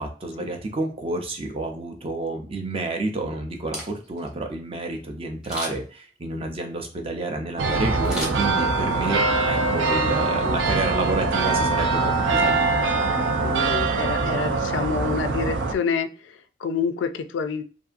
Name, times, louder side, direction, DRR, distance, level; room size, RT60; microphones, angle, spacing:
voice 1, 0.0-12.6, right 2 dB, 30° right, 4 dB, 0.5 m, -30 dB
Camera, 3.5-4.3 5.4-6.0 8.0-9.0 9.4-9.5, equal, 5° right, 0.8 m, -35 dB
sound 1, 7.6-15.7, right 3 dB, 80° right, 0.5 m, -23 dB
voice 2, 12.9-17.6, left 5 dB, 75° left, 9 dB, 0.3 m, -28 dB
2.7 x 2.5 x 2.4 m, 0.39 s
head